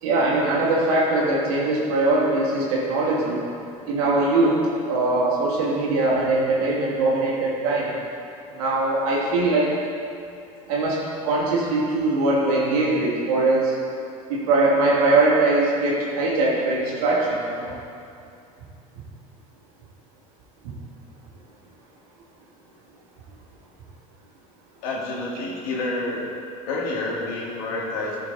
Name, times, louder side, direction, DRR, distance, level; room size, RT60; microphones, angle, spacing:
voice 1, 0.0-3.4 3.9-4.6 4.9-7.9 8.5-9.7 10.7-11.0 11.2-13.7 14.3-17.7, right 2 dB, 75° right, -4 dB, 2.7 m, -21 dB
voice 2, 24.8-26.3 26.7-28.2, left 2 dB, 70° left, -5 dB, 2.5 m, -28 dB
15.0 x 6.9 x 4.2 m, 2.5 s
hypercardioid pair, 75°, 19 cm